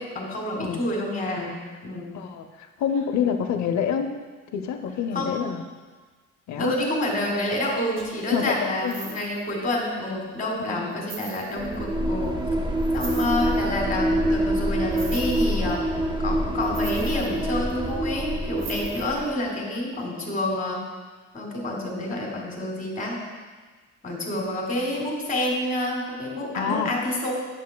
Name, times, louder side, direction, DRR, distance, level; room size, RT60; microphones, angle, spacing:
voice 1, 0.0-2.1 5.1-5.4 6.6-12.4 12.9-15.8 16.2-20.8 21.3-23.2 24.0-27.3, left 1 dB, 25° left, -1 dB, 2.0 m, -28 dB
voice 2, 0.6-0.9 2.1-4.1 4.5-5.7 6.5-6.7 8.3-9.0 26.5-26.9, left 7 dB, 65° left, 5 dB, 0.6 m, -27 dB
sound 1, 8.0-8.2 8.7-9.5 10.3-10.4 10.9-11.8 12.8-13.6 14.9-15.8 16.6-17.9 18.6-19.3 19.8-19.9, right 4 dB, 60° right, 1.3 m, -40 dB
sound 2, 11.6-19.4, right 1 dB, 15° right, 0.6 m, -26 dB
8.3 x 6.7 x 2.2 m, 1.4 s
cardioid pair, 90°, 30 cm